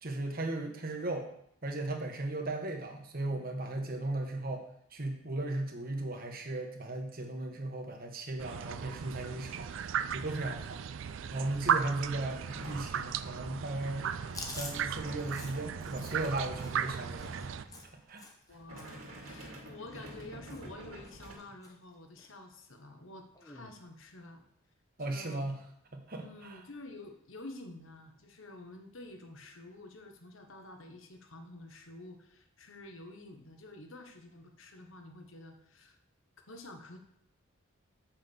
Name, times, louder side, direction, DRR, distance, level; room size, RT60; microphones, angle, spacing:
voice 1, 0.0-1.3 1.6-9.7 10.1-10.8 11.3-14.1 14.4-17.5 18.1-18.2 25.0-25.6 25.9-26.6, right 2 dB, 45° right, 3 dB, 1.3 m, -36 dB
sound 1, 8.4-17.6, right 7 dB, 60° right, 0.4 m, -36 dB
sound 2, 12.0-18.1 18.5-21.3, right 1 dB, 80° right, 2.1 m, -48 dB
Chewing mastication, 14.3-18.5 18.8-19.0 19.3-20.2 20.5-20.8 21.0-21.7 22.2-22.3 23.3-23.8, left 3 dB, 15° left, 0.9 m, -48 dB
voice 2, 18.5-24.4 25.1-25.5 26.1-36.0 36.5-37.0, left 2 dB, 70° left, 5 dB, 1.2 m, -49 dB
6.3 x 5.9 x 6.9 m, 0.69 s
head